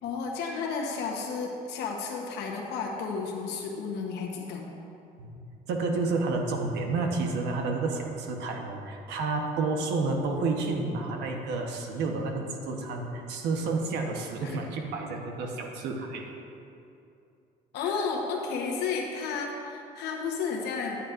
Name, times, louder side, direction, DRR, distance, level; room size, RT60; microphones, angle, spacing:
voice 1, 0.0-4.8 14.4-14.6 17.7-21.0, left 5 dB, 80° left, -1 dB, 1.0 m, -32 dB
voice 2, 5.7-16.3 17.8-17.9, right 3 dB, 85° right, 2 dB, 1.1 m, -30 dB
11.5 x 9.4 x 2.5 m, 2.7 s
cardioid pair, 110°, 17 cm